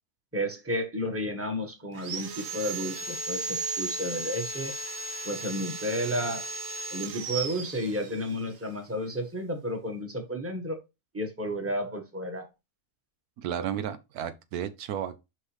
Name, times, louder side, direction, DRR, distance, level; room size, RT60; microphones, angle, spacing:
voice 1, 0.3-4.7 5.2-6.5 6.9-10.8 11.1-12.5, equal, 10° right, 1.3 m, -32 dB
Sawing, 1.9-8.4, right 3 dB, 60° right, 1.3 m, -35 dB
voice 2, 13.4-15.2, right 9 dB, 80° right, 1.2 m, -33 dB
6.2 x 5.5 x 3.3 m
omnidirectional pair, 1.6 m